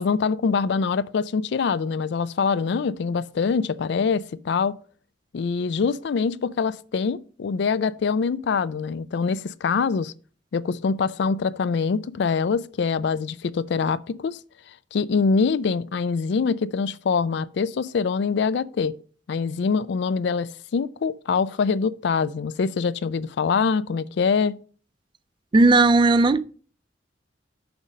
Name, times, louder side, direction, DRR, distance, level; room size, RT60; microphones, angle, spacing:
voice 1, 0.0-4.8 5.3-10.1 10.5-14.4 14.9-18.9 19.3-24.6, left 5 dB, 65° left, 0.4 m, -24 dB
voice 2, 25.5-26.4, right 3 dB, 25° right, 0.3 m, -16 dB
6.1 x 5.3 x 5.0 m
head